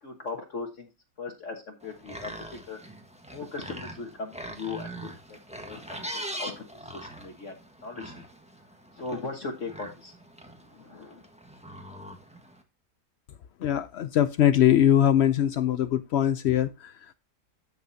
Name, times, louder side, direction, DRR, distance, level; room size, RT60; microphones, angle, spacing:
voice 1, 0.0-0.9 1.2-2.8 3.3-8.2 8.9-10.1 10.6-11.3, left 4 dB, 50° left, 3 dB, 1.6 m, -39 dB
sound 1, 1.8-12.6, right 1 dB, 5° right, 1.2 m, -42 dB
voice 2, 13.6-17.1, left 10 dB, 85° left, 13 dB, 0.5 m, -22 dB
13.0 x 6.1 x 2.7 m, 0.26 s
omnidirectional pair, 1.7 m